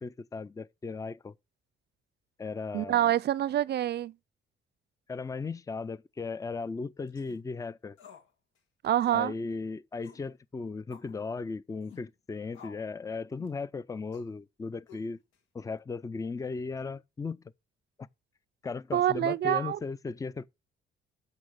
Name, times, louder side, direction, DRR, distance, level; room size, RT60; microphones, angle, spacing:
voice 1, 0.0-1.3 2.4-3.1 5.1-8.0 9.1-15.2 15.5-17.4 18.0-18.1 18.6-20.5, left 4 dB, 15° left, 0.5 m, -36 dB
voice 2, 2.7-4.1 8.8-9.3 18.9-19.8, right 12 dB, 55° right, 0.5 m, -26 dB
sound 1, 7.1-7.4 8.0-8.3 8.6-8.7 9.0-9.3 10.0-10.3 10.9-11.1 11.8-12.1 12.5-12.9 13.4-13.6 14.1-14.3 14.9-15.4, left 7 dB, 85° left, 2.0 m, -52 dB
8.4 x 6.5 x 6.4 m
cardioid pair, 90°, 20 cm